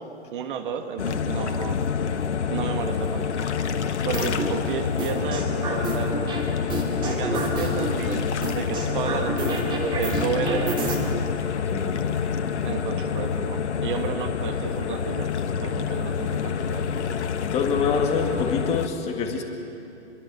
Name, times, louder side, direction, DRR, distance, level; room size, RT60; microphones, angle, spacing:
voice 1, 0.0-1.8 2.4-3.3 4.0-6.2 7.0-11.1 12.6-15.3 15.6-16.9, right 7 dB, 45° right, 6 dB, 1.9 m, -32 dB
sound 1, 1.0-18.9, left 6 dB, 75° left, 1.5 m, -27 dB
sound 2, 4.1-4.5 5.0-6.4 6.7-7.9 8.4-11.0, right 2 dB, 15° right, 3.0 m, -28 dB
voice 2, 11.7-12.1 17.4-19.4, left 5 dB, 20° left, 2 dB, 2.0 m, -26 dB
26.0 x 22.5 x 7.0 m, 2.9 s
hypercardioid pair, 145°, 35 cm